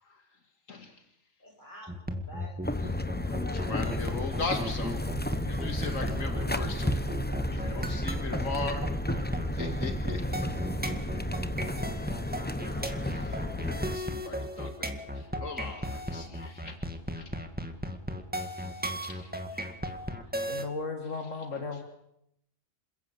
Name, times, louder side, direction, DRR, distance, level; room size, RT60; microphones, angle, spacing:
voice 1, 0.7-1.0 3.2-5.0 5.3-7.0 7.4-8.8 9.5-10.5 11.1-11.3 13.1-13.4 13.7-16.8 17.2-17.3 18.7-19.6, left 3 dB, 90° left, 5 dB, 2.5 m, -39 dB
voice 2, 1.4-2.9 8.4-8.5 12.6-14.1, equal, 40° left, 0 dB, 8.3 m, -51 dB
sound 1, 1.9-20.6, equal, 5° right, 2.1 m, -36 dB
sound 2, 2.6-14.0, left 1 dB, 10° left, 0.9 m, -32 dB
voice 3, 20.5-21.8, left 4 dB, 75° left, 4 dB, 2.4 m, -35 dB
28.0 x 16.0 x 8.6 m, 0.78 s
omnidirectional pair, 1.3 m